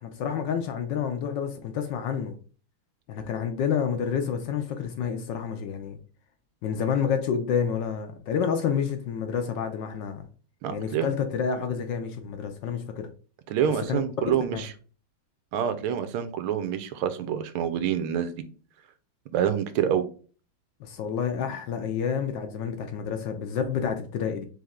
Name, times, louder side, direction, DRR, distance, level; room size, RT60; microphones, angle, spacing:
voice 1, 0.0-2.3 3.1-6.0 6.6-10.2 10.7-13.1 13.9-14.0 14.5-14.6 20.8-24.4, left 7 dB, 70° left, 6 dB, 1.2 m, -29 dB
voice 2, 10.6-11.1 13.5-14.7 15.5-18.3 19.3-20.0, right 9 dB, 80° right, 11 dB, 1.5 m, -27 dB
4.2 x 3.3 x 3.5 m, 0.38 s
omnidirectional pair, 2.3 m